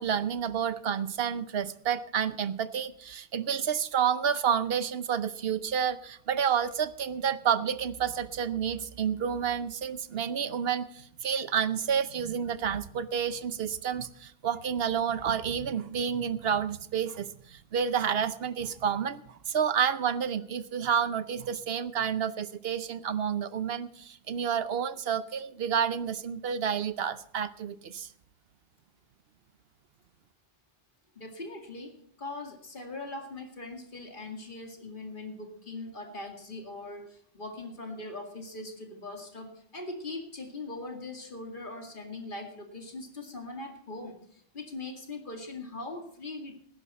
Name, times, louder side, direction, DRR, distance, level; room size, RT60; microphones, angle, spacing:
voice 1, 0.0-28.1, right 8 dB, 75° right, 14 dB, 1.0 m, -30 dB
voice 2, 31.2-46.6, left 2 dB, 55° left, 4 dB, 2.4 m, -41 dB
18.5 x 10.0 x 4.2 m, 0.64 s
omnidirectional pair, 1.0 m